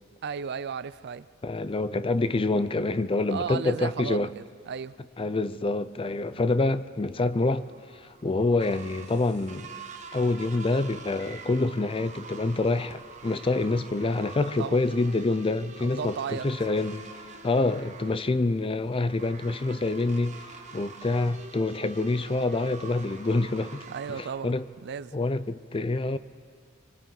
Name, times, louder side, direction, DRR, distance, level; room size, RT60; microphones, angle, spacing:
voice 1, 0.2-1.3 3.3-5.0 14.6-14.8 15.8-16.5 23.9-24.6 24.8-25.2, right 6 dB, 55° right, 0.4 m, -34 dB
voice 2, 1.4-4.3 5.2-7.7 8.2-9.7 10.1-17.1 17.4-20.4 20.7-24.6 25.1-26.2, left 2 dB, 25° left, 0.5 m, -26 dB
sound 1, 7.2-24.4, right 4 dB, 35° right, 1.3 m, -46 dB
27.5 x 24.0 x 4.0 m
head